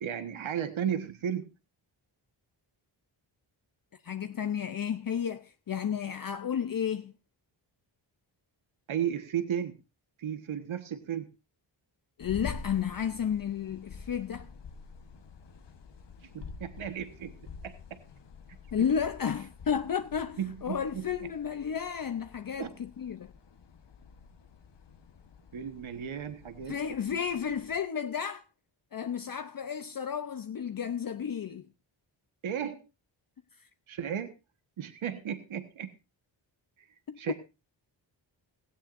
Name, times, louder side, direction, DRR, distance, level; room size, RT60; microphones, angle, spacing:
voice 1, 0.0-1.5 8.9-9.7 10.2-11.3 16.3-17.3 17.6-18.0 20.4-21.1 22.6-22.7 25.5-26.8 27.0-27.2 32.4-32.8 33.9-34.3 34.8-35.9 37.2-37.3, right 9 dB, 85° right, 1.4 m, -34 dB
voice 2, 4.0-7.1 12.2-14.5 18.7-23.3 26.7-28.4 28.9-31.7 33.6-33.7 37.1-37.3, left 8 dB, 45° left, 0.7 m, -32 dB
sound 1, 12.2-27.8, left 5 dB, 60° left, 1.3 m, -48 dB
17.0 x 16.5 x 2.6 m
wide cardioid pair, 110°, 47 cm